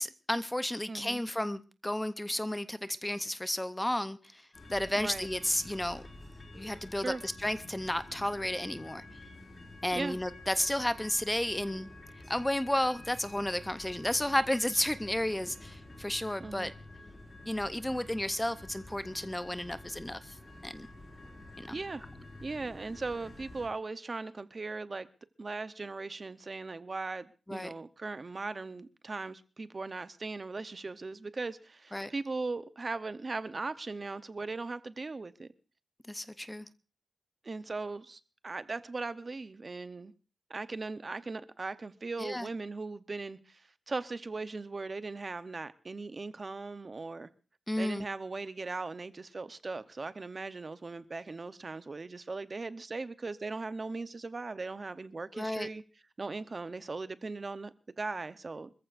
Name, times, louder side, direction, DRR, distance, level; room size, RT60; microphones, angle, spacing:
voice 1, 0.0-4.4 4.7-6.0 6.5-9.0 9.8-11.9 12.3-16.7 17.5-20.4 20.6-20.9 21.6-21.7 27.5-27.7 31.9-32.1 36.1-36.7 42.2-42.5 47.7-48.0 55.3-55.7, left 1 dB, 10° left, 0.7 m, -32 dB
voice 2, 0.9-1.2 5.0-5.3 7.0-7.2 9.9-10.2 16.4-16.7 21.7-22.0 22.4-25.1 25.4-35.5 37.4-40.1 40.5-47.3 47.8-55.8 56.2-58.7, right 3 dB, 40° right, 0.8 m, -39 dB
sound 1, 4.5-23.7, left 2 dB, 35° left, 5.1 m, -49 dB
26.0 x 14.5 x 2.5 m
wide cardioid pair, 130°, 0 cm